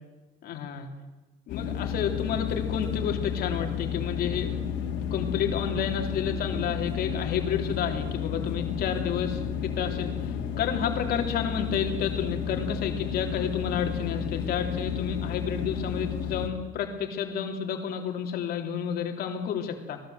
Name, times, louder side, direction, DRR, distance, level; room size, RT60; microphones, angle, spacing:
voice 1, 0.4-0.9 1.5-4.5 5.1-20.0, left 7 dB, 55° left, 3 dB, 3.2 m, -30 dB
sound 1, 1.5-16.5, left 7 dB, 90° left, 3.2 m, -32 dB
26.5 x 18.5 x 8.0 m, 1.1 s
cardioid pair, 175°, 18 cm